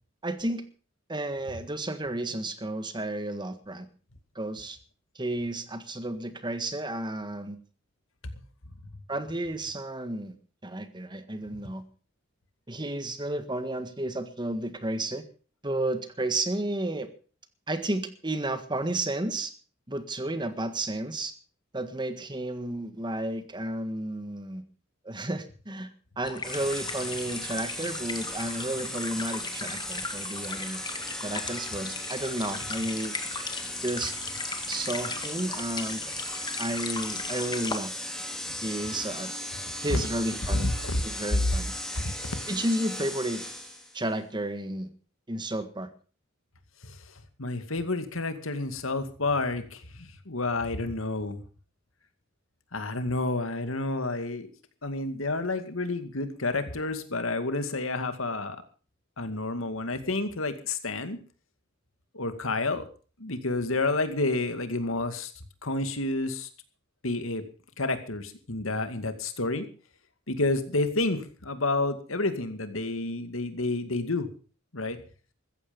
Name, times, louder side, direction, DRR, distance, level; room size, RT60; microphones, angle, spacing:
voice 1, 0.2-0.7 1.1-3.8 4.3-4.8 5.1-7.6 9.1-10.3 10.6-11.8 12.7-15.2 15.6-17.1 17.7-19.5 19.9-21.3 21.7-24.6 25.0-25.9 26.2-30.8 31.2-33.2 33.8-34.1 34.7-36.0 36.6-37.9 38.6-39.3 39.8-40.7 41.0-41.7 42.5-43.5 43.9-44.9 45.3-45.9, right 1 dB, 20° right, 10 dB, 1.6 m, -32 dB
sound 1, 26.2-37.8, left 4 dB, 20° left, 1.9 m, -38 dB
sound 2, 26.4-44.0, left 1 dB, 5° left, 2.7 m, -37 dB
voice 2, 40.5-41.0 41.3-41.5 42.0-42.1 46.8-47.0 47.4-51.4 52.7-54.5 54.8-58.6 59.2-61.2 62.1-62.8 63.2-65.3 65.6-66.5 67.0-67.4 67.8-69.7 70.3-74.3 74.7-75.0, left 2 dB, 85° left, 9 dB, 2.3 m, -29 dB
15.5 x 14.5 x 5.3 m, 0.39 s
head